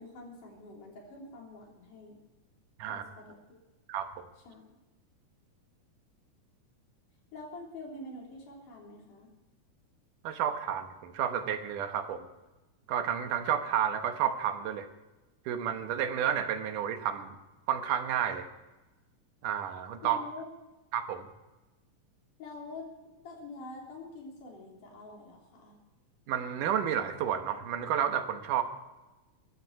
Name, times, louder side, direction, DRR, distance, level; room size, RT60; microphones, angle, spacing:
voice 1, 0.0-2.2 2.9-3.6 4.4-4.7 7.3-9.3 20.0-20.5 22.4-22.9 23.2-25.8, left 2 dB, 90° left, -1 dB, 5.0 m, -46 dB
voice 2, 3.9-4.3 10.2-12.3 12.9-14.9 15.5-17.4 17.7-18.4 19.4-20.2 20.9-21.3 26.3-28.6, right 9 dB, 90° right, 8 dB, 2.8 m, -31 dB
22.0 x 13.0 x 4.8 m, 1.1 s
omnidirectional pair, 3.6 m